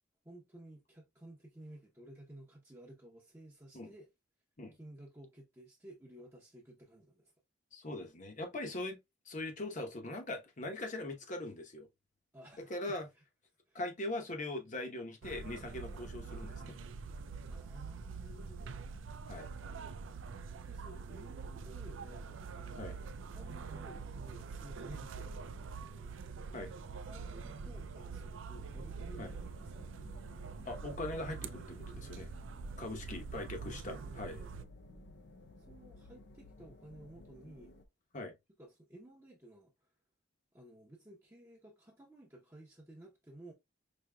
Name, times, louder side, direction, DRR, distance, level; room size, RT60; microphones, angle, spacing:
voice 1, 0.2-4.1 4.8-7.3 12.3-13.0 13.7-13.8 17.5-18.9 20.6-26.5 26.9-29.9 33.3-34.5 35.7-37.7 38.6-39.7 40.5-43.5, right 1 dB, 15° right, 0.7 m, -55 dB
voice 2, 7.7-9.0 9.2-11.9 12.7-13.1 13.7-16.8 19.3-19.5 22.8-23.0 26.5-26.7 29.2-29.3 30.6-32.3 32.8-34.4 38.1-38.3, left 2 dB, 40° left, 0.9 m, -41 dB
sound 1, 15.2-34.6, right 5 dB, 85° right, 0.4 m, -45 dB
sound 2, 28.5-37.9, left 1 dB, 60° left, 0.5 m, -56 dB
5.2 x 2.8 x 2.2 m
head